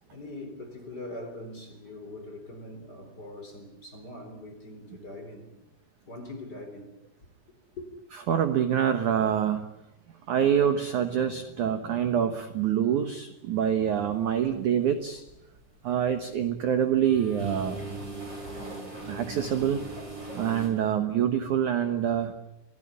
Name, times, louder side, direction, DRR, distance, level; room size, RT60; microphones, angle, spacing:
voice 1, 0.1-5.5 6.0-6.9 7.7-7.9, left 1 dB, 25° left, 3.7 m, -42 dB
voice 2, 8.3-9.7 10.3-15.2 15.8-17.8 19.1-19.9 20.3-22.3, right 9 dB, 70° right, 1.9 m, -26 dB
sound 1, 14.3-14.6 15.0-16.4 16.8-20.7, right 2 dB, 20° right, 7.3 m, -38 dB
25.5 x 18.5 x 9.7 m
omnidirectional pair, 5.4 m